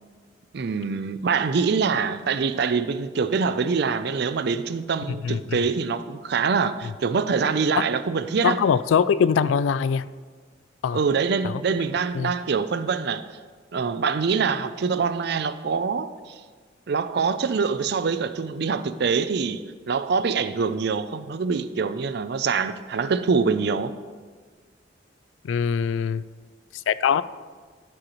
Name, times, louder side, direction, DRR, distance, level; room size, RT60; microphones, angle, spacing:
voice 1, 0.5-8.6 10.9-13.2 13.7-16.4 16.9-19.6 19.9-23.9, right 5 dB, 60° right, 0.4 m, -24 dB
voice 2, 5.0-5.6 6.8-6.9 8.4-10.1 10.8-11.0 11.4-11.6 12.1-12.3 25.4-26.2 26.7-27.2, left 7 dB, 85° left, 0.3 m, -23 dB
12.5 x 7.7 x 3.1 m
head